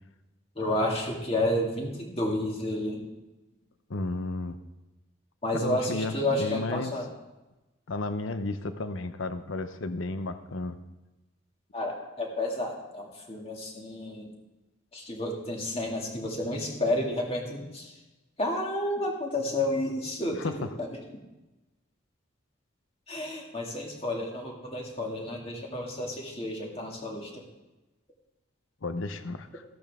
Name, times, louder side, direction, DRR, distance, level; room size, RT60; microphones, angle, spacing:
voice 1, 0.6-3.0 5.4-7.1 11.7-14.3 14.9-17.9 18.4-20.9 23.1-27.4, left 1 dB, 30° left, -1 dB, 2.3 m, -31 dB
voice 2, 3.9-4.6 5.5-7.0 7.9-10.8 20.3-20.7 28.8-29.6, left 2 dB, 80° left, 10 dB, 0.7 m, -33 dB
14.0 x 12.5 x 3.6 m, 1.0 s
head